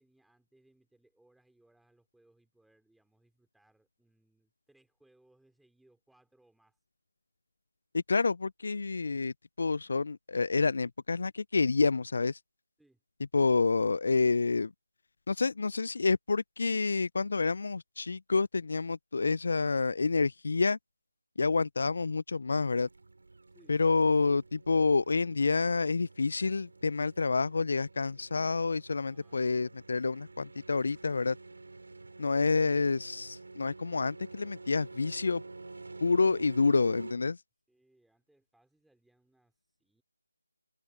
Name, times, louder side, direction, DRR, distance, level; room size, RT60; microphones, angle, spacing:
voice 1, 0.0-6.8 12.8-13.0 23.5-23.8 29.0-29.5 37.7-40.0, right 1 dB, ahead, 4.0 m, -68 dB
voice 2, 7.9-12.4 13.3-14.7 15.3-20.8 21.4-22.9 23.7-31.4 32.2-35.4 36.0-37.4, left 4 dB, 50° left, 0.5 m, -28 dB
sound 1, 22.5-37.1, right 3 dB, 60° right, 4.2 m, -49 dB
figure-of-eight pair, 160°, 0 cm